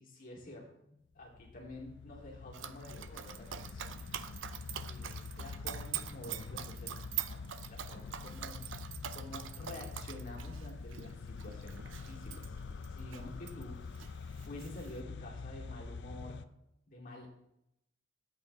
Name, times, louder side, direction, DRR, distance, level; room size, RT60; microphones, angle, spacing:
voice 1, 0.0-4.2 4.6-7.4 7.7-8.6 9.1-13.9 14.4-16.5 16.9-17.3, left 1 dB, 50° left, -4 dB, 2.9 m, -49 dB
sound 1, 1.2-16.4, left 4 dB, 65° left, 0.5 m, -46 dB
Dog, 2.5-13.6 13.9-15.0, right 11 dB, 80° right, 0.6 m, -44 dB
13.0 x 8.4 x 3.4 m, 0.81 s
head